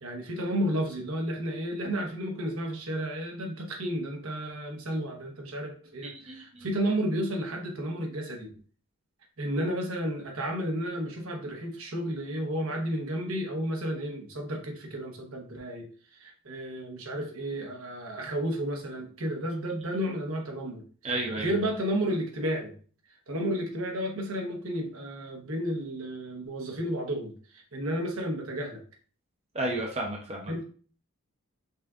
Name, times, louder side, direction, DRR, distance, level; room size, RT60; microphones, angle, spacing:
voice 1, 0.0-8.5 9.4-20.8 21.4-22.7 23.3-28.8 30.5-30.6, right 1 dB, 70° right, 2 dB, 1.0 m, -32 dB
voice 2, 6.0-6.7 21.0-21.5 29.5-30.5, right 2 dB, 30° right, 0 dB, 0.7 m, -32 dB
5.6 x 2.5 x 3.6 m, 0.42 s
head